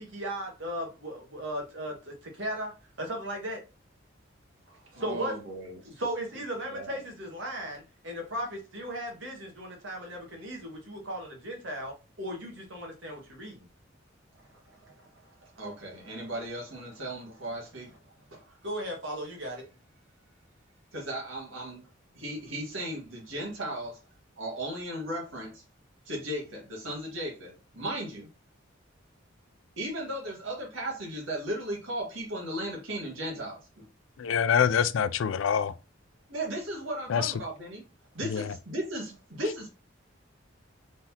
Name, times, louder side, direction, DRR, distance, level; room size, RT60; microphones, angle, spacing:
voice 1, 0.0-2.7 3.0-3.6 5.0-5.4 5.9-13.7 18.6-19.6, right 1 dB, 70° right, 1.7 m, -36 dB
voice 2, 4.9-5.8 6.7-7.0 15.0-15.1 15.4-18.0 18.3-18.6 20.9-21.9 22.2-24.0 24.4-25.6 26.1-28.3 29.8-33.6 36.3-37.8 38.1-39.7, right 1 dB, 85° right, 1.9 m, -36 dB
voice 3, 34.2-35.7 37.1-37.3 38.2-38.6, left 7 dB, 80° left, 0.4 m, -25 dB
4.1 x 3.9 x 2.8 m
head